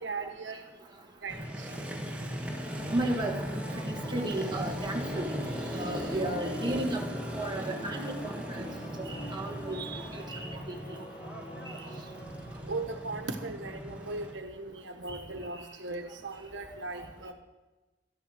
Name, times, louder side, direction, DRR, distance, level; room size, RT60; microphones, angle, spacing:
voice 1, 0.0-0.5 1.2-1.3 12.7-17.3, right 3 dB, 90° right, 6 dB, 1.3 m, -38 dB
Motorcycle, 1.3-14.3, equal, 5° right, 1.8 m, -38 dB
Singing / Musical instrument, 2.4-13.6, left 1 dB, 25° left, 1.3 m, -46 dB
voice 2, 2.9-5.3 5.7-7.0 7.3-8.7 9.0-10.8 15.1-15.2 17.0-17.1, right 1 dB, 25° right, 1 dB, 1.6 m, -34 dB
12.5 x 11.5 x 6.4 m, 1.2 s
head